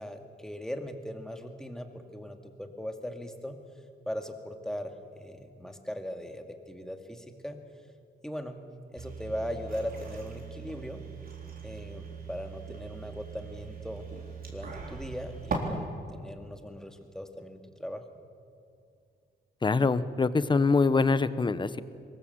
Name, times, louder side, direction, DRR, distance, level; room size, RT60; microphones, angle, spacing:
voice 1, 0.0-3.6 4.1-7.6 8.2-8.6 8.9-11.0 11.6-14.1 14.5-18.0, equal, 5° left, 5 dB, 2.2 m, -39 dB
sound 1, 9.0-15.6, right 6 dB, 50° right, 4.0 m, -40 dB
voice 2, 19.6-21.8, left 4 dB, 25° left, 14 dB, 0.9 m, -24 dB
23.0 x 20.5 x 8.1 m, 2.3 s
cardioid pair, 115°, 19 cm